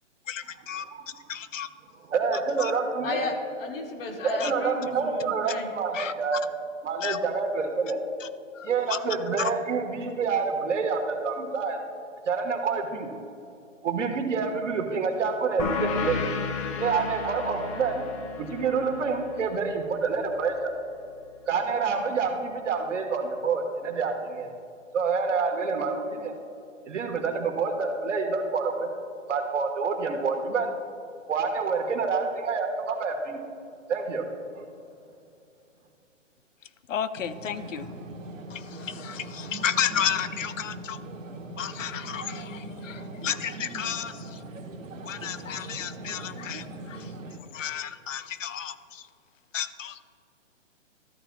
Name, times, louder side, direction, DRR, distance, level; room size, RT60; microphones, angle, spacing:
voice 1, 0.3-0.9 1.3-1.7 2.6-2.7 4.2-4.5 5.9-6.4 7.0-7.2 8.2-8.3 8.5-9.0 9.4-9.5 36.6-37.9 38.5-41.0 41.6-44.4 45.0-47.1 47.5-49.1 49.5-50.0, left 9 dB, 80° left, 13 dB, 0.6 m, -33 dB
voice 2, 2.1-3.2 4.2-6.4 6.8-8.0 8.6-11.8 12.3-13.1 13.8-16.2 16.8-18.0 18.4-20.7 21.5-24.5 24.9-26.3 26.9-28.9 29.3-30.7 31.3-33.4 33.9-34.2 34.5-34.7, right 5 dB, 70° right, 4 dB, 1.4 m, -27 dB
voice 3, 3.0-5.7, left 3 dB, 50° left, 3 dB, 1.3 m, -33 dB
sound 1, 15.6-20.8, left 5 dB, 30° left, 0.6 m, -34 dB
sound 2, 37.1-47.4, right 2 dB, 85° right, 1.2 m, -40 dB
13.5 x 8.9 x 2.3 m, 2.6 s
hypercardioid pair, 140°, 38 cm